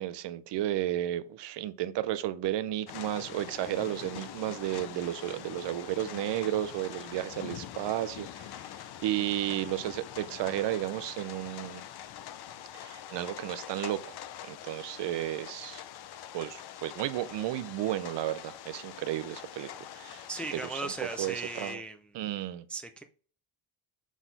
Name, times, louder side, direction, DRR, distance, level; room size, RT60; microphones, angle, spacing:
voice 1, 0.0-11.8 12.7-14.2 14.4-15.8 16.3-20.9 21.2-21.8 22.1-22.7, right 13 dB, 60° right, 0.6 m, -33 dB
sound 1, 2.9-21.8, left 11 dB, 55° left, 0.6 m, -44 dB
voice 2, 20.3-22.0 22.7-23.0, right 3 dB, 5° left, 0.4 m, -37 dB
6.1 x 4.0 x 3.9 m
cardioid pair, 125°, 48 cm